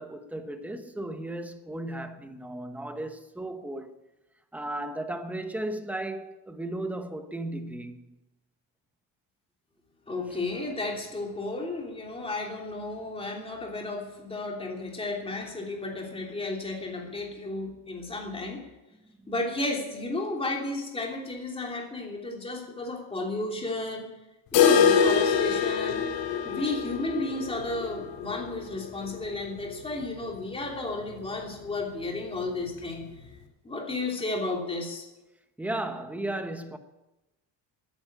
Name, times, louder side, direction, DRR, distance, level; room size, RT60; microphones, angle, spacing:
voice 1, 0.0-3.9 4.5-8.0 35.6-36.8, right 1 dB, 5° right, 0.9 m, -35 dB
voice 2, 10.1-18.7 19.3-24.1 24.5-26.0 26.4-33.0 33.6-35.0, left 2 dB, 15° left, 3.0 m, -33 dB
sound 1, 24.5-30.3 30.6-30.7 31.1-31.2 31.7-31.8 32.7-32.8, left 7 dB, 85° left, 2.6 m, -25 dB
13.5 x 10.5 x 9.0 m
cardioid pair, 175°, 44 cm